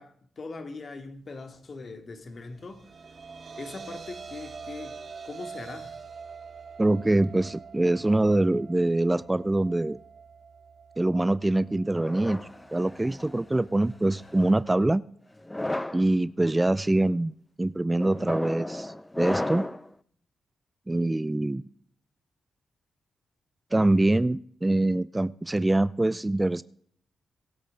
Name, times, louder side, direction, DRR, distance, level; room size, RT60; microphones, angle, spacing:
voice 1, 0.0-2.9 3.6-5.0 5.2-6.0, left 3 dB, 50° left, 2.4 m, -41 dB
sound 1, 2.4-14.8, right 5 dB, 55° right, 2.1 m, -46 dB
voice 2, 6.8-10.0 11.0-12.4 12.7-15.0 15.9-17.3 17.6-19.7 20.9-21.6 23.7-26.6, right 2 dB, 20° right, 0.5 m, -24 dB
sound 2, 12.0-13.4 14.2-14.5 15.4-16.0 16.7-17.0 18.0-19.9, left 1 dB, 15° left, 0.9 m, -33 dB
25.0 x 8.6 x 3.8 m
hypercardioid pair, 40°, 0 cm